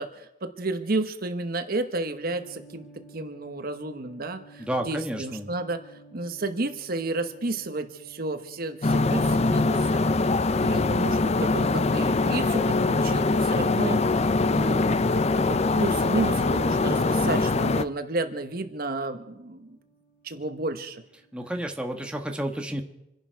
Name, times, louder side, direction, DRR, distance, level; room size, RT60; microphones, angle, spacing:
voice 1, 0.0-5.8 6.1-19.8 20.2-21.0, right 2 dB, 55° right, 8 dB, 1.1 m, -32 dB
sound 1, 2.3-21.8, right 2 dB, 90° left, 4.4 m, -54 dB
voice 2, 4.6-5.5 21.3-22.8, right 1 dB, 5° right, 3 dB, 1.4 m, -31 dB
sound 2, 8.8-17.8, left 3 dB, 35° left, 0.5 m, -23 dB
27.5 x 11.0 x 4.6 m, 0.87 s
head